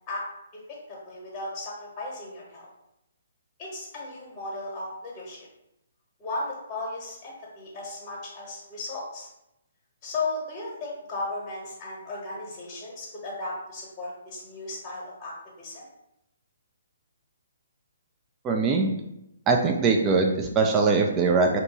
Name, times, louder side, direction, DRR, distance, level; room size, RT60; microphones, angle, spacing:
voice 1, 0.7-2.7 3.6-5.5 6.2-9.3 10.0-15.9, left 2 dB, 20° left, -4 dB, 0.9 m, -35 dB
voice 2, 18.4-18.9 19.5-21.6, right 4 dB, 20° right, 2 dB, 0.3 m, -22 dB
2.7 x 2.2 x 3.9 m, 0.84 s
figure-of-eight pair, 135°, 0 cm